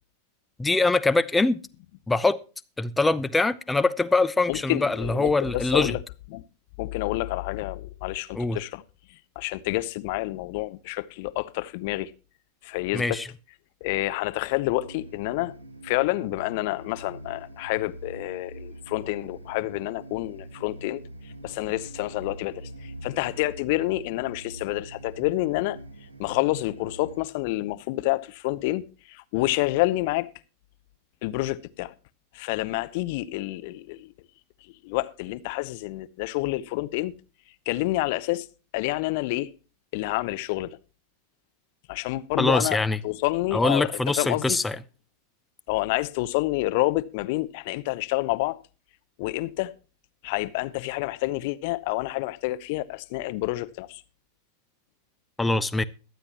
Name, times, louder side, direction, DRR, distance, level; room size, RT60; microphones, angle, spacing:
voice 1, 0.6-1.6 2.1-2.4 2.8-6.0 8.3-8.6 12.9-13.3 42.4-43.0 43.5-44.8 55.4-55.8, left 3 dB, 10° left, 0.6 m, -23 dB
voice 2, 4.5-6.0 6.3-6.4 6.8-8.8 9.4-12.1 12.6-13.2 13.8-15.5 15.8-21.0 21.4-25.8 26.2-30.3 31.2-31.9 32.3-34.1 34.8-37.1 37.7-38.5 38.7-39.5 39.9-40.8 41.9-42.8 43.0-44.6 45.7-48.6 49.2-49.7 50.2-54.0, left 19 dB, 50° left, 0.7 m, -28 dB
sound 1, 14.7-27.2, right 1 dB, 80° right, 1.9 m, -44 dB
22.0 x 8.0 x 2.9 m
figure-of-eight pair, 90°, 0 cm